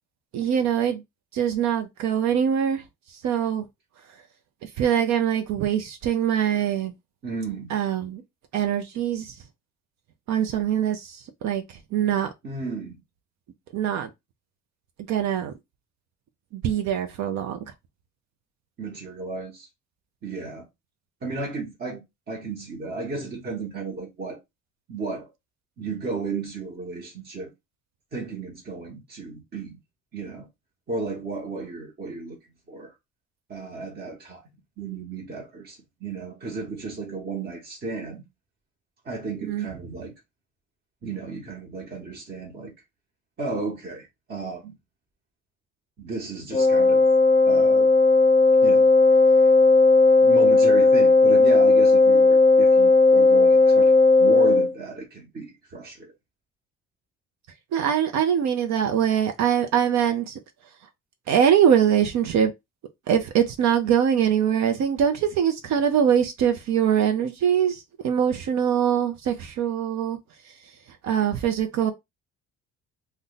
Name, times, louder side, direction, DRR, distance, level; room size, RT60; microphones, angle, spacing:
voice 1, 0.3-1.0 1.3-2.8 3.1-3.7 4.6-6.9 7.7-8.2 8.5-9.4 10.3-12.3 13.7-14.1 15.1-15.5 16.5-17.6 39.4-39.7 57.7-60.4 61.3-62.5 63.1-70.2 71.0-71.9, right 9 dB, 60° right, 0.6 m, -23 dB
voice 2, 7.2-7.8 12.4-13.0 18.8-19.7 20.2-20.7 21.2-24.4 24.9-25.3 25.8-27.5 28.1-29.8 30.1-30.5 30.9-32.4 32.7-32.9 33.5-34.4 34.8-38.2 39.0-40.1 41.0-42.7 43.4-44.7 46.0-47.0 47.5-47.9 48.6-48.9 49.3-49.5 50.2-53.9 54.2-56.1, right 3 dB, 35° right, 1.1 m, -34 dB
Wind instrument woodwind instrument, 46.5-54.7, left 3 dB, 20° left, 0.6 m, -16 dB
2.6 x 2.2 x 3.8 m
supercardioid pair, 90°, 31 cm